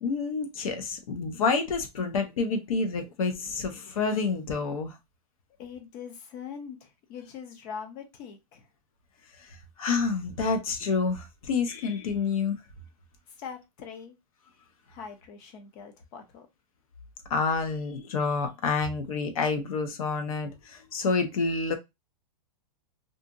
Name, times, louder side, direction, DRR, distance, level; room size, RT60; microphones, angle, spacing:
voice 1, 0.0-5.0 9.4-12.6 17.3-21.8, left 4 dB, 65° left, 0.7 m, -28 dB
voice 2, 5.6-8.7 13.4-14.1 14.9-16.5, left 6 dB, 20° left, 0.4 m, -42 dB
2.8 x 2.5 x 2.4 m
supercardioid pair, 170°, 20 cm